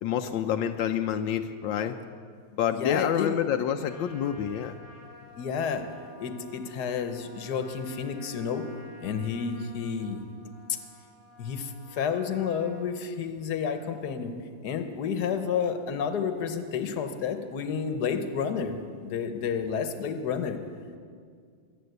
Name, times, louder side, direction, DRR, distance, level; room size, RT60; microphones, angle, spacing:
voice 1, 0.0-2.0 2.6-4.8, left 9 dB, 85° left, 6 dB, 1.4 m, -28 dB
voice 2, 2.7-3.4 5.4-5.8 6.2-8.6 9.0-10.3 10.7-10.8 11.4-14.3 14.6-20.6, left 6 dB, 60° left, 8 dB, 1.5 m, -30 dB
Trumpet, 3.8-12.9, left 2 dB, 20° right, 2.7 m, -51 dB
21.0 x 8.6 x 8.0 m, 2.1 s
omnidirectional pair, 2.0 m